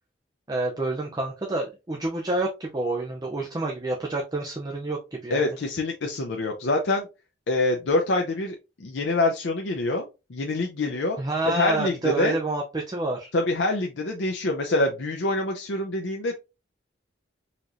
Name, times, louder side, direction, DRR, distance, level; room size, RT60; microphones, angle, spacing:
voice 1, 0.5-5.4 11.2-13.3, right 2 dB, 20° right, 0 dB, 0.5 m, -28 dB
voice 2, 5.3-7.1 7.5-11.2 11.4-12.4 13.3-16.4, left 2 dB, 75° left, 2 dB, 0.5 m, -25 dB
4.2 x 3.0 x 2.5 m, 0.28 s
head